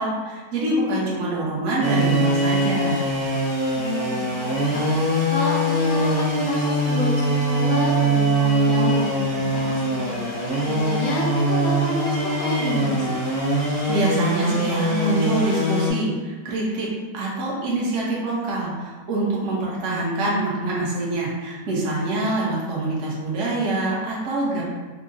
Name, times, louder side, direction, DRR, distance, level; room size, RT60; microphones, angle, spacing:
voice 1, 0.0-3.0 13.9-24.6, right 2 dB, 55° right, -5 dB, 1.1 m, -25 dB
sound 1, 1.8-15.9, right 1 dB, 30° right, 0.8 m, -22 dB
voice 2, 3.7-13.2, left 2 dB, 65° left, -5 dB, 1.0 m, -29 dB
3.6 x 2.1 x 3.8 m, 1.3 s
omnidirectional pair, 1.8 m